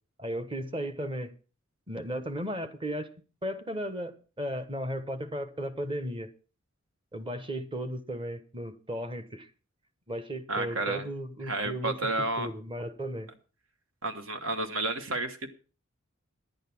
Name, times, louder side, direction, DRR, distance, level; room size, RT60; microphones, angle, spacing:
voice 1, 0.2-1.3 1.9-3.1 3.4-6.3 7.1-9.5 10.1-13.3, equal, 25° right, 1.2 m, -35 dB
voice 2, 10.5-11.0 11.5-12.5 14.0-15.5, right 2 dB, 70° right, 1.5 m, -31 dB
11.0 x 9.3 x 6.0 m
head